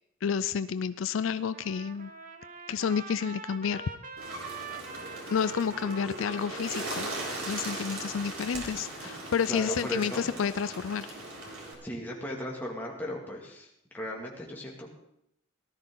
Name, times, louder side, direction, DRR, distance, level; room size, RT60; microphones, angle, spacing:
voice 1, 0.2-2.1 2.7-3.8 5.3-7.1 7.5-11.1, left 6 dB, 70° left, 14 dB, 0.4 m, -30 dB
Trumpet, 1.5-8.4, right 4 dB, 40° right, 1.2 m, -45 dB
Bird, 4.2-11.7, right 2 dB, 85° right, 3.8 m, -39 dB
voice 2, 9.5-10.3 11.8-14.9, equal, 10° left, -2 dB, 2.3 m, -36 dB
18.0 x 12.5 x 3.9 m, 0.78 s
head